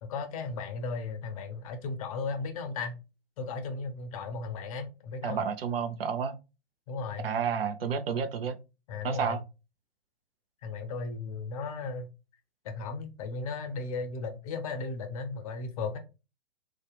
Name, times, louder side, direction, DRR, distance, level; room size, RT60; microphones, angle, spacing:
voice 1, 0.0-3.0 3.4-5.4 6.9-7.3 8.9-9.4 10.6-12.1 12.6-16.0, left 4 dB, 35° left, 0.5 m, -36 dB
voice 2, 5.2-6.3 7.2-8.6 9.0-9.4, right 6 dB, 70° right, 0.4 m, -30 dB
2.7 x 2.1 x 2.3 m
figure-of-eight pair, 115°, 31 cm